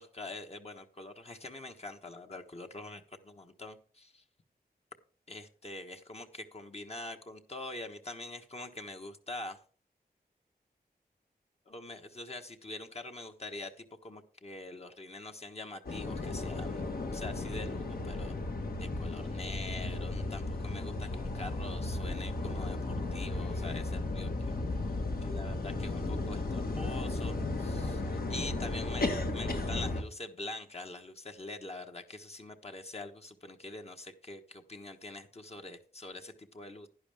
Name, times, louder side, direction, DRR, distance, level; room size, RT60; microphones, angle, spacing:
voice 1, 0.0-4.2 5.3-9.6 11.7-18.3 18.8-24.5 25.2-36.9, left 2 dB, 40° left, 4 dB, 1.3 m, -44 dB
sound 1, 15.9-30.0, left 2 dB, 65° left, 1.6 m, -35 dB
11.0 x 10.5 x 3.5 m, 0.41 s
wide cardioid pair, 105°, 17 cm